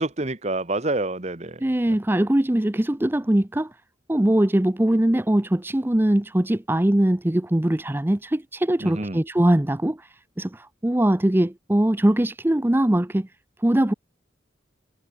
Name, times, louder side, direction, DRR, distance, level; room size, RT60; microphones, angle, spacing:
voice 1, 0.0-1.6 1.9-2.0 8.8-9.2, right 2 dB, 35° right, 1.4 m, -27 dB
voice 2, 1.6-3.8 4.1-13.3 13.6-13.9, right 1 dB, 10° right, 0.5 m, -21 dB
head